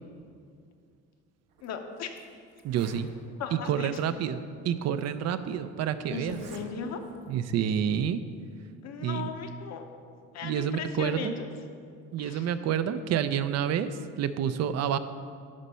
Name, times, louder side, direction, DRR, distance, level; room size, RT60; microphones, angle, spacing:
Zipper (clothing), 1.5-1.7 2.2-2.3 2.5-3.1 3.9-4.0 5.0-5.1 6.2-6.7 7.0-7.3, right 4 dB, 90° right, 1.5 m, -47 dB
voice 1, 1.6-2.2 3.4-3.9 6.1-7.0 8.8-9.9 10.3-11.5 12.2-12.5, left 6 dB, 60° left, 5 dB, 0.9 m, -37 dB
voice 2, 2.6-3.1 3.5-6.4 7.3-8.2 9.0-9.3 10.4-11.3 12.1-13.9 14.2-15.0, right 9 dB, 55° right, 11 dB, 0.5 m, -28 dB
11.5 x 4.1 x 5.6 m, 2.3 s
cardioid pair, 115°, 31 cm